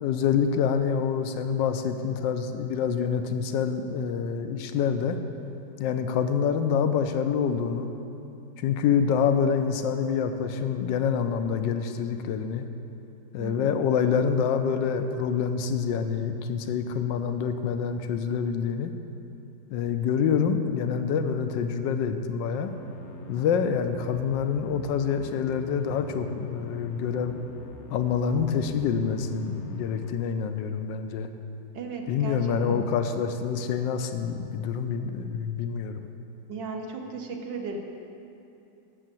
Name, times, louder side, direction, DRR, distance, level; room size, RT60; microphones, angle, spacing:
voice 1, 0.0-5.2 5.8-7.9 8.6-12.7 13.3-18.9 19.7-22.7 23.3-27.4 27.9-31.3 32.1-36.1, left 7 dB, 85° left, 8 dB, 1.3 m, -26 dB
voice 2, 13.4-13.8 31.7-32.4 32.7-32.9 36.5-37.8, right 4 dB, 75° right, 2 dB, 1.6 m, -36 dB
sound 1, 22.4-30.1, left 3 dB, 60° left, 0.7 m, -45 dB
8.6 x 7.1 x 7.5 m, 2.7 s
omnidirectional pair, 2.0 m